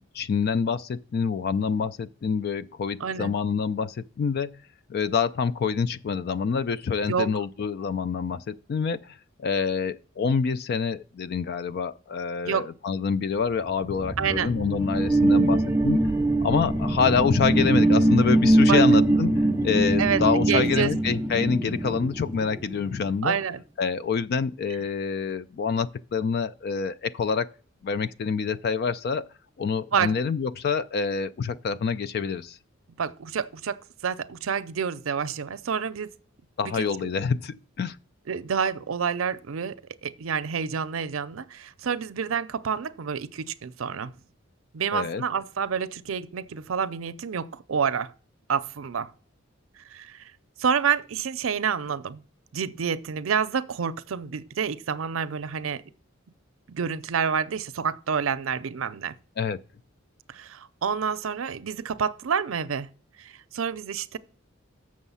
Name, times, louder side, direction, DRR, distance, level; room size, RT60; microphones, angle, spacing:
voice 1, 0.1-4.6 4.9-16.0 16.4-23.4 23.8-27.5 27.8-29.2 29.6-32.6 36.6-38.0 44.9-45.2 59.4-59.6, left 5 dB, 50° left, 0.3 m, -26 dB
voice 2, 3.0-3.3 7.1-7.3 12.4-12.7 14.2-14.5 18.7-18.8 20.0-20.9 23.2-23.6 29.9-30.1 33.0-36.1 36.6-36.9 38.3-44.1 44.7-48.1 48.5-49.1 49.9-50.3 50.6-52.2 52.5-55.8 56.7-59.1 60.3-62.9 63.2-64.2, right 6 dB, 85° right, 0.5 m, -28 dB
sound 1, 13.7-22.9, right 1 dB, 10° right, 0.5 m, -22 dB
7.1 x 6.3 x 5.5 m
head